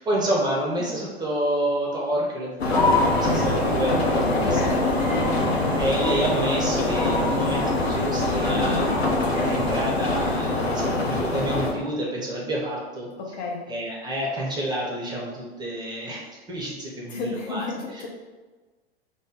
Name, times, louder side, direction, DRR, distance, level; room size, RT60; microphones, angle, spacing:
voice 1, 0.0-4.6 5.7-8.8 9.4-13.1 13.7-17.7 17.9-18.1, right 1 dB, 15° right, -3 dB, 0.8 m, -29 dB
sound 1, 2.6-11.7, left 2 dB, 85° left, 0.6 m, -24 dB
sound 2, 2.7-10.4, left 2 dB, 25° left, 1.1 m, -30 dB
voice 2, 4.3-5.3 8.5-8.9 13.2-13.7 17.1-18.1, left 3 dB, 40° left, -1 dB, 0.6 m, -32 dB
3.9 x 2.0 x 3.6 m, 1.3 s
figure-of-eight pair, 95°, 31 cm